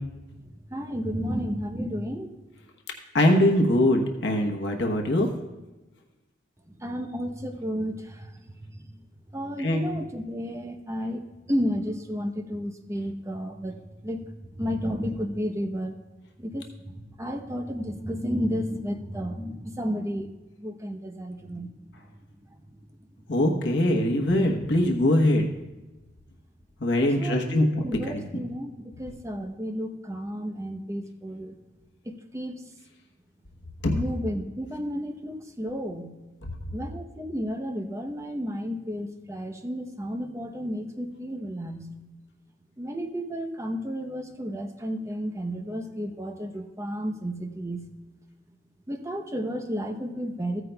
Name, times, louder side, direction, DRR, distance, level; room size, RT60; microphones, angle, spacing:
voice 1, 0.7-2.3 6.8-8.9 9.3-11.2 11.5-16.0 16.4-20.3 20.6-21.7 27.0-31.5 32.1-32.6 33.9-36.1 36.7-41.9 42.8-47.8 48.9-50.6, equal, 15° right, 5 dB, 0.8 m, -32 dB
voice 2, 3.1-5.3 9.6-9.8 23.3-25.5 26.8-28.4 33.8-33.9 36.4-36.5, left 1 dB, 75° left, 2 dB, 1.1 m, -22 dB
15.0 x 9.3 x 2.3 m, 1.1 s
head